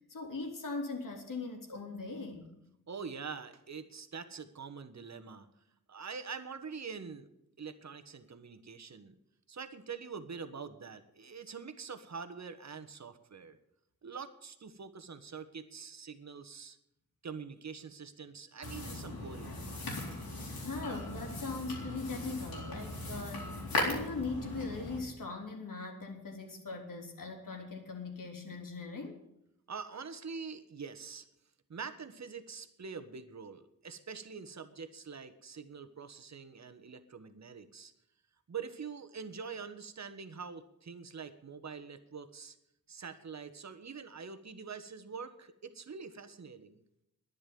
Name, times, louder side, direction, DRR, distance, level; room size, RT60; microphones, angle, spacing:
voice 1, 0.1-2.5 20.6-23.5 23.8-29.2, left 3 dB, 65° left, 2 dB, 3.4 m, -40 dB
voice 2, 2.9-5.5 5.9-7.3 7.6-9.2 9.5-13.6 14.0-16.8 17.2-19.6 22.8-22.9 29.7-31.3 31.7-37.9 38.5-42.6 42.9-46.8, right 5 dB, 50° right, 10 dB, 1.4 m, -45 dB
sound 1, 18.6-25.0, left 2 dB, 85° left, 4.1 m, -38 dB
10.5 x 10.5 x 9.4 m, 0.82 s
cardioid pair, 75°, 35 cm